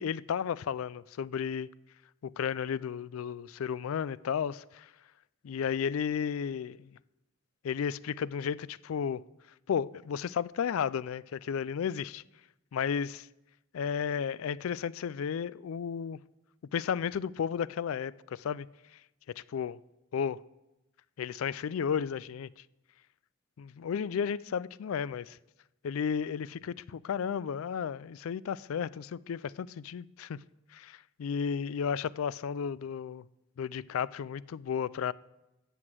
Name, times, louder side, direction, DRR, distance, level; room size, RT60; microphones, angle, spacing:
voice 1, 0.0-1.7 2.2-4.9 5.4-7.0 7.6-9.2 9.7-12.2 12.7-13.3 13.7-16.2 16.7-18.7 19.5-19.8 20.1-20.4 21.2-22.5 23.6-25.4 25.8-30.4 30.7-33.2 33.6-35.1, left 7 dB, 85° left, 0.4 m, -33 dB
13.5 x 8.0 x 7.6 m
head